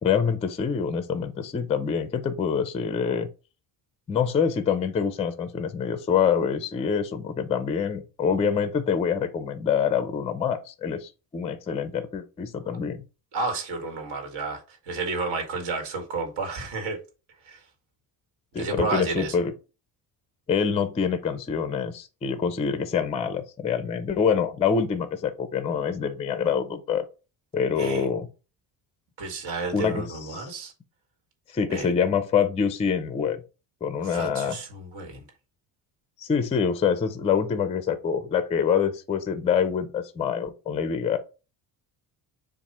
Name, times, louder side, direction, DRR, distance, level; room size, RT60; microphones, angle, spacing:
voice 1, 0.0-3.3 4.1-13.0 18.5-19.5 20.5-27.0 27.5-28.3 29.7-30.5 31.5-33.4 33.8-34.6 36.2-41.2, left 6 dB, 15° left, 0.3 m, -26 dB
voice 2, 13.3-17.0 17.5-17.6 18.6-19.3 27.8-28.1 29.2-30.7 31.7-31.9 34.0-35.2, right 3 dB, 70° right, 1.9 m, -31 dB
7.3 x 2.5 x 5.3 m
cardioid pair, 180°, 41 cm